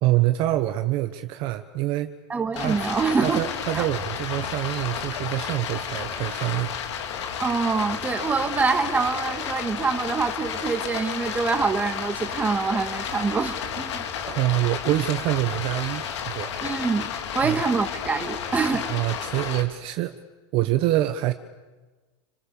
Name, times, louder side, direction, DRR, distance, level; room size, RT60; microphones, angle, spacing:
voice 1, 0.0-2.1 2.5-2.9 3.2-6.7 14.3-16.5 17.4-17.6 18.7-20.1 20.5-21.3, right 15 dB, 35° right, 9 dB, 1.2 m, -25 dB
voice 2, 2.3-3.4 3.7-3.8 7.4-14.1 16.6-17.1 17.3-18.9, right 4 dB, 10° right, 6 dB, 2.1 m, -25 dB
Stream, 2.6-19.6, left 7 dB, 85° left, 3.8 m, -32 dB
29.0 x 26.0 x 7.1 m, 1.3 s
supercardioid pair, 165°, 14 cm